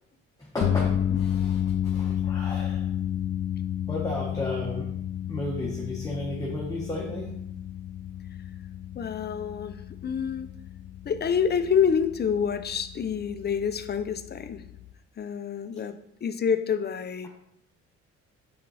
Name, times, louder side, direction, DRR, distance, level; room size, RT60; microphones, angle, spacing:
voice 1, 0.4-2.9 3.9-4.9 5.3-7.3, left 1 dB, 10° left, -4 dB, 1.2 m, -33 dB
sound 1, 0.6-14.9, left 10 dB, 85° left, 0.5 m, -31 dB
voice 2, 8.9-10.5 11.0-14.7 15.2-17.3, left 7 dB, 35° left, 11 dB, 0.5 m, -27 dB
6.6 x 4.3 x 4.1 m, 0.76 s
cardioid pair, 90°, 30 cm